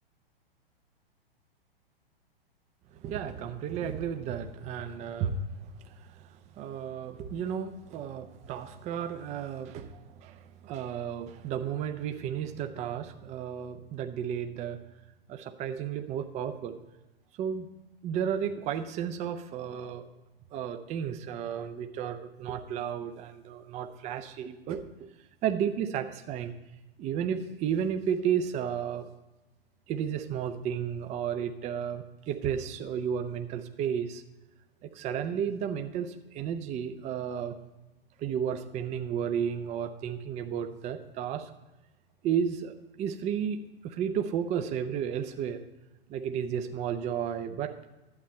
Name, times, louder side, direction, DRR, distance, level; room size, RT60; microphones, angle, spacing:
voice 1, 2.9-14.8 15.3-16.8 17.4-17.7 18.0-20.1 20.5-25.1 25.4-26.5 27.0-29.1 29.9-34.2 34.8-37.6 38.2-41.5 42.2-45.6 46.1-47.7, right 8 dB, 20° right, 8 dB, 0.6 m, -33 dB
12.0 x 8.3 x 4.3 m, 1.0 s
figure-of-eight pair, 110°, 30 cm